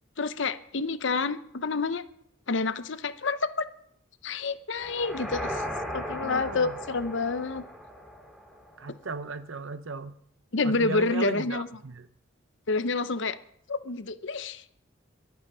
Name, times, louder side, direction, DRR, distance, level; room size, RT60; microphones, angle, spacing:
voice 1, 0.2-2.0 2.5-3.7 4.2-5.6 5.9-7.6 10.5-11.7 12.7-13.4 13.7-14.6, left 3 dB, 65° left, 0.8 m, -28 dB
sound 1, 4.8-8.9, equal, ahead, 2.1 m, -37 dB
voice 2, 6.2-6.8 8.8-10.2 10.6-12.1, right 3 dB, 75° right, 0.8 m, -36 dB
23.5 x 9.0 x 5.5 m
head